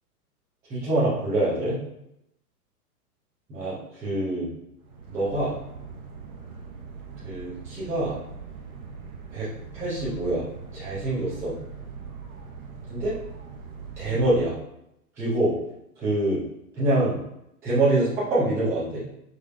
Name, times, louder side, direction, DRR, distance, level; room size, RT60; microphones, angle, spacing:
voice 1, 0.7-1.8 3.5-4.5 5.1-5.5 7.2-8.2 9.3-9.5 9.7-10.4 10.7-11.5 12.9-13.2 14.0-14.5 15.2-15.5 16.0-16.4 16.8-17.2 17.6-19.0, right 2 dB, 5° right, -9 dB, 0.4 m, -25 dB
sound 1, 4.8-14.4, right 5 dB, 65° right, 0.9 m, -41 dB
5.1 x 2.0 x 2.4 m, 0.82 s
hypercardioid pair, 120°, 46 cm